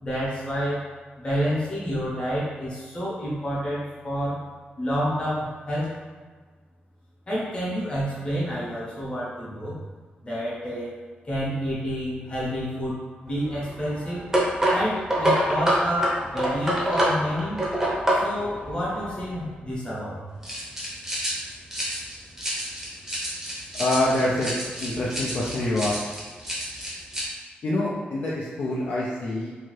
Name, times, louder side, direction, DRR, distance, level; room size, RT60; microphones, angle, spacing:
voice 1, 0.0-0.8 1.2-4.4 4.8-5.9 7.3-9.8 10.2-10.9 11.2-14.2 14.7-17.6 18.1-20.2, equal, 30° left, -7 dB, 0.9 m, -29 dB
sound 1, 13.3-19.5 20.4-27.2, equal, 10° right, 0.7 m, -27 dB
voice 2, 23.8-24.5 24.8-26.0 27.6-29.5, left 1 dB, 55° left, -7 dB, 0.5 m, -25 dB
2.7 x 2.4 x 3.1 m, 1.5 s
wide cardioid pair, 145°, 4 cm